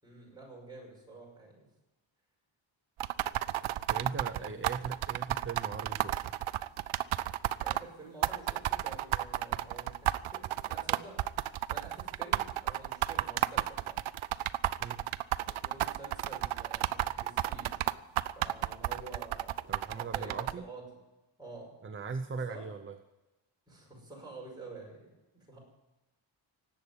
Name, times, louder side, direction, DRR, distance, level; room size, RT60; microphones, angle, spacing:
voice 1, 0.0-1.7 4.3-4.6 7.6-11.1 11.7-14.0 15.4-17.8 18.3-20.9 21.4-21.8 22.3-22.7 23.7-25.6, right 3 dB, 10° right, -3 dB, 5.7 m, -49 dB
sound 1, 3.0-7.8 8.2-20.5, right 13 dB, 85° right, 0.7 m, -32 dB
voice 2, 3.9-6.3 14.8-15.0 19.7-20.6 21.8-23.0, right 5 dB, 25° right, 8 dB, 0.6 m, -39 dB
17.5 x 8.5 x 9.6 m, 1.0 s
wide cardioid pair, 180°, 49 cm